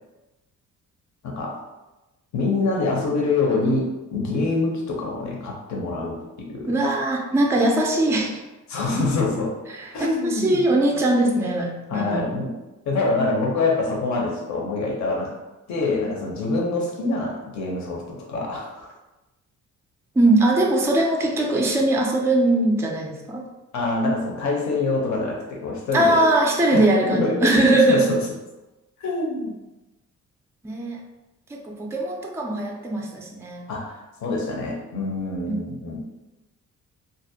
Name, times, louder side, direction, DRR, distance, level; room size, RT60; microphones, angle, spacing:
voice 1, 1.2-1.6 2.3-6.8 8.7-9.5 9.9-10.6 11.9-12.5 12.9-15.4 15.7-18.9 23.7-26.3 26.7-28.2 29.0-29.6 33.7-36.1, left 3 dB, 60° left, -1 dB, 0.7 m, -25 dB
voice 2, 6.7-8.4 9.7-12.4 20.2-23.4 25.9-28.1 30.6-31.0 31.5-33.7 35.5-35.6, right 1 dB, 10° right, 1 dB, 0.3 m, -21 dB
2.5 x 2.0 x 2.7 m, 1.0 s
cardioid pair, 90°, 31 cm